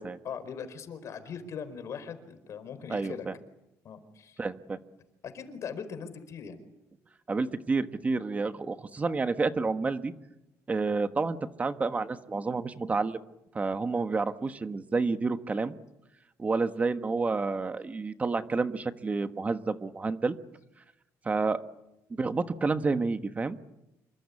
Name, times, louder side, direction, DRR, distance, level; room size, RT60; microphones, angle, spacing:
voice 1, 0.2-3.3 3.8-4.4 5.2-6.6, left 6 dB, 55° left, 11 dB, 4.5 m, -40 dB
voice 2, 2.9-3.3 4.4-4.8 7.3-10.1 10.7-13.2 13.5-15.7 16.4-20.4 21.2-21.6 22.1-23.6, right 4 dB, 25° right, 10 dB, 1.3 m, -29 dB
27.0 x 23.5 x 8.5 m, 0.90 s
cardioid pair, 130°, 6 cm